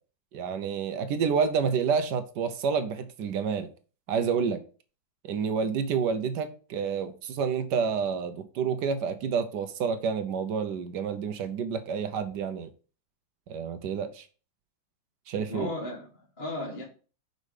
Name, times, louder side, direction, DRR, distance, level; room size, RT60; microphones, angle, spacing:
voice 1, 0.3-3.7 4.1-4.6 5.2-12.7 13.5-14.3 15.3-15.7, right 6 dB, 70° right, 1.2 m, -29 dB
voice 2, 15.5-16.8, left 1 dB, 30° left, 1.9 m, -35 dB
5.4 x 5.3 x 4.9 m
omnidirectional pair, 2.1 m